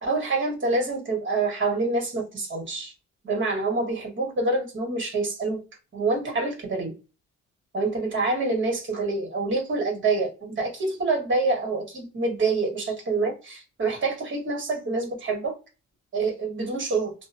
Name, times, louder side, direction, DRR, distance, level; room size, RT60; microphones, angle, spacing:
voice 1, 0.0-2.9 3.2-5.6 5.9-6.9 7.7-15.5 16.1-17.1, right 3 dB, 40° right, 1.4 m, -26 dB
2.8 x 2.1 x 2.4 m
cardioid pair, 90°, 30 cm